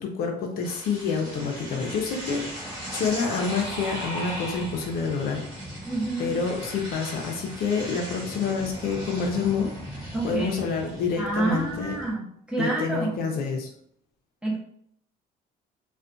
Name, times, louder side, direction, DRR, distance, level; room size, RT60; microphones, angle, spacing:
voice 1, 0.0-5.4 6.2-12.0 12.6-13.7, left 5 dB, 65° left, 2 dB, 0.5 m, -28 dB
sound 1, 0.6-12.1, equal, 25° right, 1.2 m, -37 dB
voice 2, 5.9-6.3 10.1-10.6 11.2-13.2 14.4-14.6, right 2 dB, 5° right, -4 dB, 0.7 m, -28 dB
2.4 x 2.1 x 2.4 m, 0.68 s
cardioid pair, 110°, 17 cm